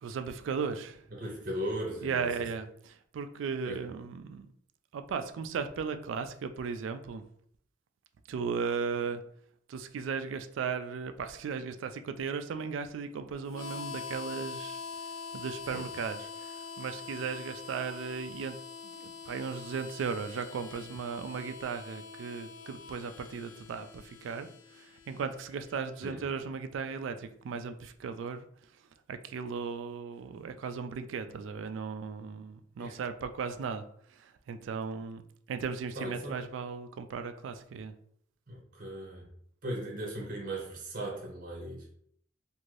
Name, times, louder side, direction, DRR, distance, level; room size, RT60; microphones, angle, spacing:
voice 1, 0.0-1.1 2.0-4.5 4.9-7.2 8.3-9.2 9.7-14.8 15.3-18.6 18.8-28.5 29.1-33.8 34.1-35.2 35.5-37.9, right 5 dB, 85° right, 9 dB, 0.3 m, -36 dB
voice 2, 1.1-2.5 3.6-3.9 15.7-15.8 26.0-26.2 32.8-33.0 35.9-36.4 38.5-39.3 39.6-41.9, right 1 dB, 45° right, -1 dB, 0.7 m, -38 dB
Harmonica, 13.5-26.1, left 5 dB, 85° left, 0.4 m, -44 dB
2.6 x 2.5 x 3.2 m, 0.65 s
head